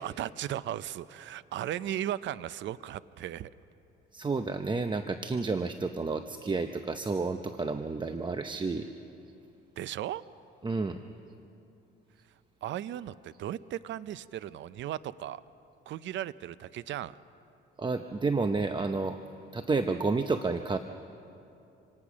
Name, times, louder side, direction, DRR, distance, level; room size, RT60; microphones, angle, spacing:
voice 1, 0.0-3.5 9.8-10.2 12.6-15.4 15.9-17.1, right 12 dB, 70° right, 17 dB, 0.5 m, -36 dB
voice 2, 4.1-8.9 10.6-11.0 17.8-19.2 19.5-20.8, right 4 dB, 25° right, 8 dB, 0.7 m, -30 dB
26.5 x 18.5 x 6.2 m, 2.7 s
cardioid pair, 90°, 20 cm